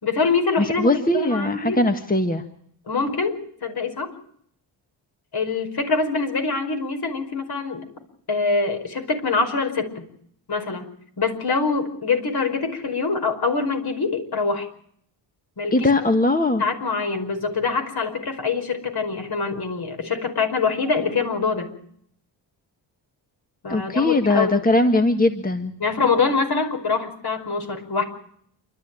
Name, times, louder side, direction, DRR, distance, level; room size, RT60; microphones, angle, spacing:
voice 1, 0.0-1.8 2.9-4.1 5.3-7.8 8.3-10.0 10.5-10.9 11.2-14.7 15.6-15.9 16.6-21.7 23.6-24.6 25.8-28.0, left 4 dB, 55° left, 6 dB, 5.3 m, -24 dB
voice 2, 0.6-2.4 15.7-16.6 23.7-25.7, left 2 dB, 20° left, 7 dB, 1.6 m, -20 dB
28.0 x 12.5 x 9.0 m, 0.67 s
cardioid pair, 75°, 47 cm